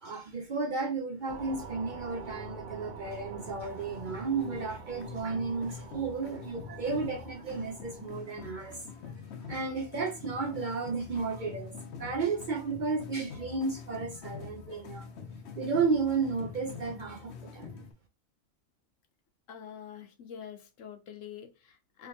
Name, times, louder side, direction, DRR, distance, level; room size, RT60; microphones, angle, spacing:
voice 1, 0.0-8.8 9.4-11.7 12.0-15.0 15.6-17.9, right 4 dB, 55° right, 0.5 m, -33 dB
sound 1, 1.1-10.1 10.5-10.6, right 2 dB, 10° left, 0.8 m, -50 dB
sound 2, 1.3-8.1, right 5 dB, 70° right, 1.0 m, -48 dB
sound 3, 3.4-17.9, left 6 dB, 65° left, 0.9 m, -45 dB
voice 2, 19.5-22.1, left 8 dB, 85° left, 1.2 m, -46 dB
3.4 x 2.9 x 2.7 m
omnidirectional pair, 1.3 m